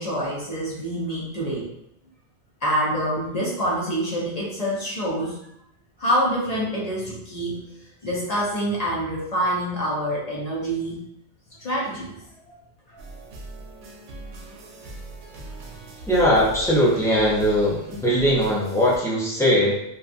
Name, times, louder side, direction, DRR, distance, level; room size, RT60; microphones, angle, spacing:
voice 1, 0.0-1.7 2.6-5.4 6.0-7.6 8.0-11.0 11.6-12.2 12.5-12.6 12.9-13.0, equal, 45° left, -5 dB, 0.7 m, -26 dB
sound 1, 13.0-19.0, right 2 dB, 80° right, 0.9 m, -40 dB
voice 2, 16.1-19.7, equal, 5° left, -7 dB, 0.4 m, -20 dB
2.7 x 2.3 x 2.5 m, 0.78 s
omnidirectional pair, 1.1 m